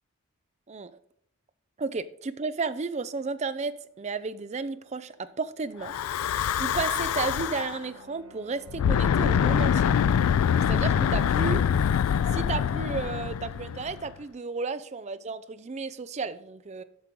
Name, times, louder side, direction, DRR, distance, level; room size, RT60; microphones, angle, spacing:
voice 1, 1.8-3.7 4.0-5.9 6.6-9.9 10.5-11.6 12.3-16.8, right 4 dB, 30° right, 13 dB, 0.4 m, -33 dB
sound 1, 4.0-10.4, right 3 dB, 75° right, 1.3 m, -50 dB
Breathing / Wind, 5.8-7.8 8.7-14.1, left 8 dB, 75° left, 0.3 m, -25 dB
8.1 x 6.2 x 3.7 m, 0.71 s
head